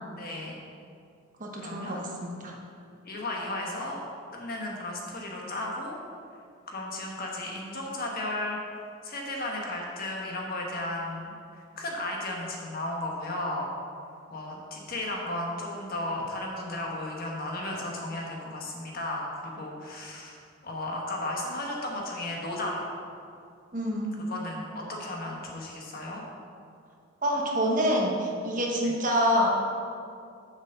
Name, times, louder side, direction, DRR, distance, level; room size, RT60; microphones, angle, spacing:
voice 1, 0.2-0.6 1.6-2.0 3.0-4.1 4.3-6.0 6.7-8.6 9.0-13.7 14.3-22.8 24.3-26.2 28.8-29.0, left 1 dB, 50° left, -1 dB, 1.4 m, -34 dB
voice 2, 1.4-2.6 23.7-24.2 27.2-29.5, equal, 40° right, -1 dB, 1.2 m, -27 dB
7.2 x 5.2 x 6.7 m, 2.4 s
head